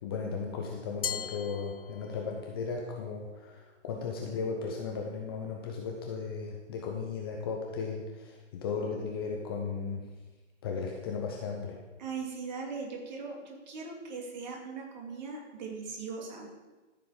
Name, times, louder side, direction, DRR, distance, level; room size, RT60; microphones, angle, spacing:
voice 1, 0.0-10.1 10.6-11.8, left 5 dB, 20° left, 1 dB, 0.8 m, -36 dB
Glass, 1.0-2.5, left 8 dB, 50° left, 0.5 m, -38 dB
voice 2, 12.0-16.5, right 4 dB, 35° right, 0 dB, 2.6 m, -39 dB
13.0 x 7.0 x 5.0 m, 1.2 s
figure-of-eight pair, 135°, 37 cm